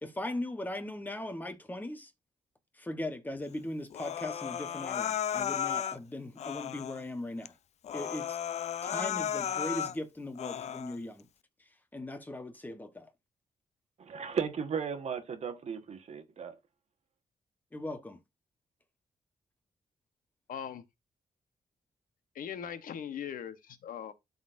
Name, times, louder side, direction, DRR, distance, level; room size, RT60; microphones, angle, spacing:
voice 1, 0.0-2.1 2.7-7.5 7.9-8.4 8.8-11.3 11.6-13.1 17.7-18.2, left 1 dB, 10° left, 1.0 m, -39 dB
Human voice, 3.9-6.0 6.4-7.0 7.5-7.6 7.8-10.0 10.4-11.0, left 9 dB, 50° left, 0.4 m, -34 dB
voice 2, 14.0-16.6, right 6 dB, 50° right, 1.3 m, -35 dB
voice 3, 20.5-20.8 22.3-24.1, left 8 dB, 80° left, 1.0 m, -40 dB
12.0 x 4.0 x 2.6 m
wide cardioid pair, 175°, 14 cm